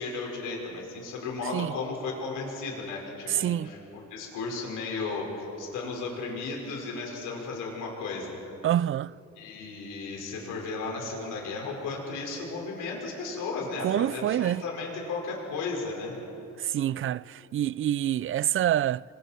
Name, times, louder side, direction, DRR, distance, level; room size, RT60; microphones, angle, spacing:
voice 1, 0.0-3.8 4.1-8.3 9.4-16.2, left 3 dB, 90° left, 5.4 m, -34 dB
voice 2, 3.3-3.7 8.6-9.1 13.8-14.6 16.6-19.0, right 11 dB, 45° right, 0.4 m, -27 dB
29.0 x 24.0 x 4.5 m
cardioid pair, 90°, 30 cm